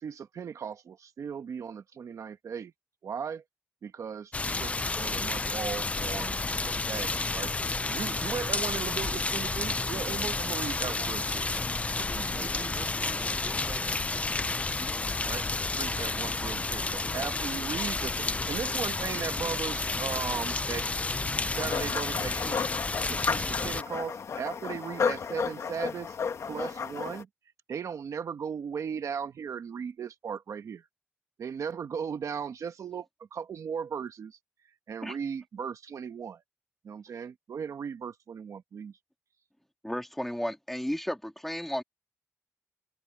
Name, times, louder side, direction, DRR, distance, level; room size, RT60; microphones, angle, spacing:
voice 1, 0.0-2.7 3.0-3.4 3.8-6.3 6.6-7.5 7.9-11.5 12.0-12.5 15.2-15.5 15.7-20.9 21.5-22.6 23.1-26.2 26.5-27.3 27.7-30.8 31.4-34.4 34.9-36.4 36.8-39.0, right 7 dB, 80° right, 1.2 m, -37 dB
sound 1, 4.3-23.8, left 3 dB, 25° left, 0.5 m, -31 dB
voice 2, 12.1-14.4, right 4 dB, 40° right, 1.1 m, -46 dB
sound 2, 21.5-27.2, left 6 dB, 70° left, 1.7 m, -33 dB
voice 3, 39.8-41.8, equal, 5° left, 2.6 m, -33 dB
wide cardioid pair, 120°, 5 cm